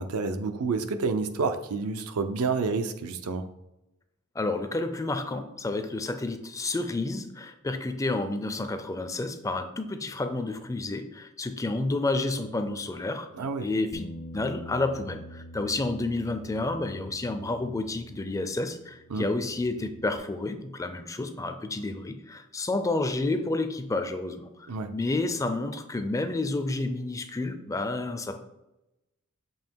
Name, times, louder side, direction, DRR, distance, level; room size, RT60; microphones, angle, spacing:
voice 1, 0.0-3.4 13.4-13.7 19.1-19.3 24.7-24.9, right 4 dB, 80° right, 8 dB, 0.5 m, -29 dB
voice 2, 4.4-13.3 13.6-28.4, left 2 dB, 15° left, 8 dB, 0.4 m, -30 dB
Bass guitar, 13.9-20.2, equal, 65° left, 0.6 m, -46 dB
7.2 x 2.9 x 4.5 m, 0.92 s
head